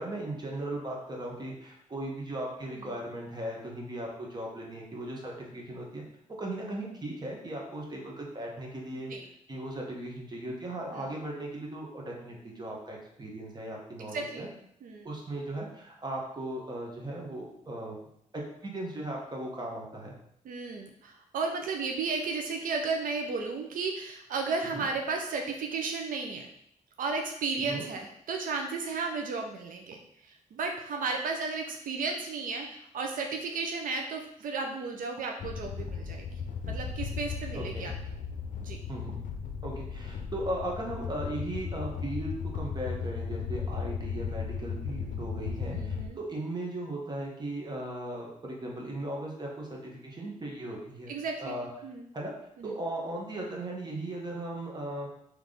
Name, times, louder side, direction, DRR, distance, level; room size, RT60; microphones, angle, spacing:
voice 1, 0.0-6.0 6.4-9.1 9.5-14.5 15.0-18.0 18.6-20.2 24.7-24.9 27.6-27.8 37.5-37.9 38.9-51.1 51.4-51.7 52.1-52.3 52.6-55.1, right 1 dB, 30° right, -1 dB, 1.3 m, -37 dB
voice 2, 14.0-14.5 14.8-15.1 20.4-26.5 27.0-36.3 36.7-37.9 38.6-38.8 45.7-46.2 51.1-51.5 51.8-52.0 52.6-52.8, right 4 dB, 75° right, 3 dB, 0.5 m, -34 dB
sound 1, 35.4-46.1, left 6 dB, 65° left, 0.5 m, -36 dB
3.5 x 3.1 x 3.8 m, 0.72 s
cardioid pair, 70°, 14 cm